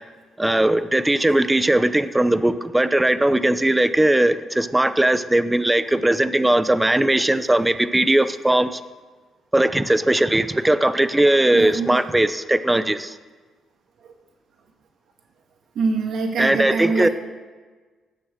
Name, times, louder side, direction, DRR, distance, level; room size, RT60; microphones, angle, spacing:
voice 1, 0.4-8.8 9.5-13.2 16.4-17.1, right 1 dB, 10° right, 12 dB, 0.6 m, -19 dB
voice 2, 11.5-12.0 14.0-14.1 15.7-17.1, right 4 dB, 70° right, 2 dB, 2.3 m, -24 dB
16.5 x 6.7 x 6.5 m, 1.4 s
cardioid pair, 90°, 0 cm